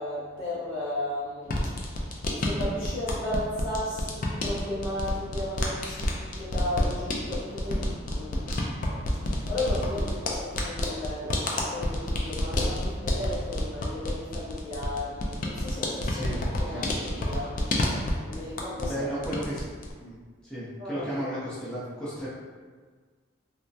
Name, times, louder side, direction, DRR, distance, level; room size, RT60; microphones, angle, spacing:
voice 1, 0.0-16.2 16.6-17.5 18.2-19.1 20.8-21.1, left 1 dB, 85° left, -9 dB, 1.2 m, -35 dB
sound 1, 1.4-19.0 19.2-19.9, left 1 dB, 45° left, 0.4 m, -30 dB
voice 2, 16.1-16.9 18.8-19.7 20.0-22.3, equal, 5° left, -10 dB, 0.7 m, -34 dB
3.2 x 2.1 x 2.6 m, 1.5 s
head